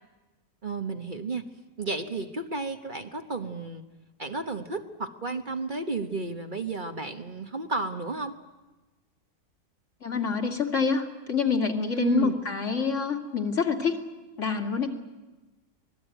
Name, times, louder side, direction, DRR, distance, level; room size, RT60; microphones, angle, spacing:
voice 1, 0.6-1.5 1.8-3.8 4.2-8.3 11.9-12.4, right 4 dB, 35° right, 6 dB, 1.3 m, -32 dB
voice 2, 10.0-14.0 14.4-14.9, left 5 dB, 55° left, 3 dB, 2.6 m, -26 dB
26.0 x 19.5 x 9.2 m, 1.2 s
omnidirectional pair, 1.5 m